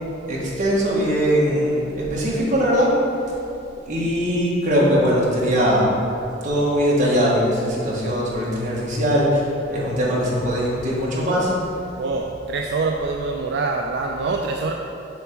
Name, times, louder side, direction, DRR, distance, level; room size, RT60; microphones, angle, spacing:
voice 1, 0.3-2.9 3.9-5.9 6.4-9.4 9.7-11.5, equal, 45° right, -6 dB, 1.6 m, -20 dB
voice 2, 12.0-14.7, right 3 dB, 65° right, 2 dB, 0.4 m, -25 dB
7.1 x 3.5 x 6.0 m, 2.8 s
head